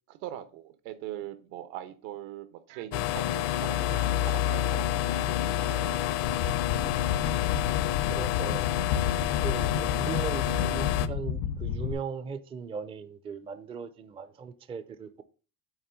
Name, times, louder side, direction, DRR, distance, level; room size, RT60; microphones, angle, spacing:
voice 1, 0.1-6.1, right 12 dB, 80° right, 1.3 m, -42 dB
sound 1, 2.7-2.9 3.3-3.6 3.9-4.2 4.5-5.3 5.6-6.0, right 13 dB, 65° right, 0.8 m, -48 dB
sound 2, 2.9-11.1, left 13 dB, 70° left, 0.7 m, -28 dB
sound 3, 6.2-11.9, left 8 dB, 90° left, 1.5 m, -31 dB
voice 2, 6.7-7.0 8.0-8.7 9.4-15.2, right 6 dB, 15° right, 0.4 m, -38 dB
8.9 x 3.4 x 6.5 m
cardioid pair, 155°, 40 cm